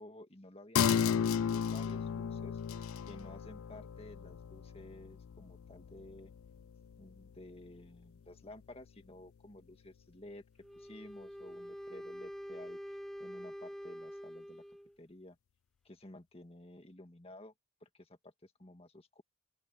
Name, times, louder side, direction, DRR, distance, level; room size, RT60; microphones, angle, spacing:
voice 1, 0.0-2.6 3.1-6.3 7.0-10.4 10.7-14.6 15.0-15.4 15.8-17.5 17.8-19.2, left 1 dB, 30° left, 1.9 m, -53 dB
sound 1, 0.8-7.8 8.1-8.2, left 7 dB, 80° left, 0.4 m, -35 dB
Wind instrument woodwind instrument, 10.6-15.0, equal, ahead, 0.7 m, -46 dB
open air
head